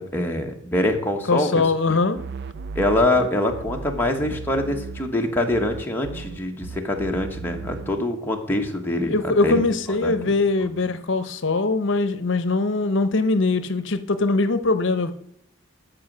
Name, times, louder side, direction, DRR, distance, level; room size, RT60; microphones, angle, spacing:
voice 1, 0.0-1.6 2.7-9.6 10.0-10.1 10.6-10.7, left 1 dB, 10° left, 1.4 m, -24 dB
voice 2, 1.3-2.2 9.1-15.1, left 3 dB, 60° left, 0.8 m, -22 dB
sound 1, 2.1-5.2 5.5-8.1, right 4 dB, 55° right, 0.4 m, -35 dB
13.5 x 5.2 x 6.2 m
head